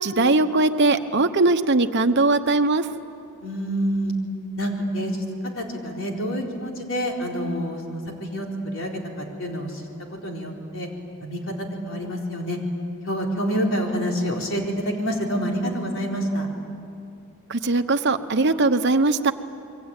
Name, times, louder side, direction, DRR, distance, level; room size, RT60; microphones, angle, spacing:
voice 1, 0.0-2.9 17.5-19.3, right 2 dB, 55° right, 7 dB, 1.1 m, -20 dB
voice 2, 3.4-4.1 4.6-5.2 5.6-8.9 9.2-9.8 10.2-10.9 11.2-12.6 13.0-16.5, equal, 60° left, 0 dB, 4.3 m, -27 dB
27.5 x 23.0 x 9.1 m, 2.6 s
head